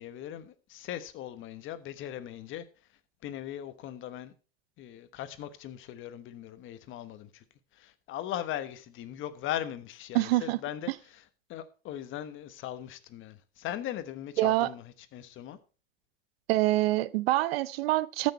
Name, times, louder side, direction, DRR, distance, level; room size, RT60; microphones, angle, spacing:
voice 1, 0.0-2.7 3.2-4.3 4.8-7.4 7.7-11.2 11.5-15.6, left 11 dB, 40° left, 1.2 m, -39 dB
voice 2, 10.1-10.6 14.4-14.7 16.5-18.3, right 17 dB, 75° right, 0.7 m, -25 dB
14.0 x 6.5 x 4.2 m
supercardioid pair, 120°, 30 cm